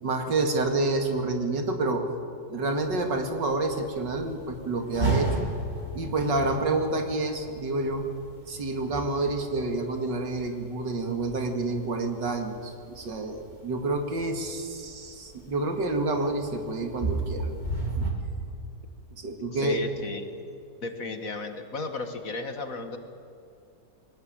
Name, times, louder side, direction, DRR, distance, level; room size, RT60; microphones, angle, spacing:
voice 1, 0.0-2.0 2.5-5.4 5.9-8.0 8.5-17.5 18.0-18.1 19.2-19.9, right 2 dB, 85° right, 5 dB, 2.9 m, -28 dB
sound 1, 2.8-18.1, right 3 dB, 25° right, 3.1 m, -33 dB
voice 2, 19.5-20.3 20.8-23.0, left 3 dB, 50° left, 7 dB, 2.1 m, -34 dB
23.0 x 19.5 x 8.8 m, 2.5 s
omnidirectional pair, 1.9 m